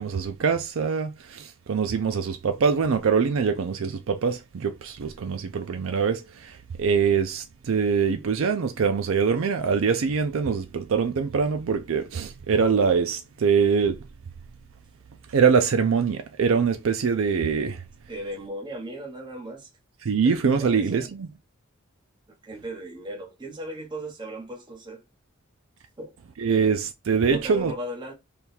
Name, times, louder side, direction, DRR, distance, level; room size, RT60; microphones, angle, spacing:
voice 1, 0.0-14.0 15.3-17.8 20.0-21.3 26.4-27.7, right 6 dB, 70° right, 0.4 m, -24 dB
voice 2, 18.1-19.7 20.2-21.0 22.4-25.0 26.0-26.2 27.3-28.1, right 1 dB, 20° right, 0.9 m, -36 dB
3.5 x 2.3 x 4.3 m
head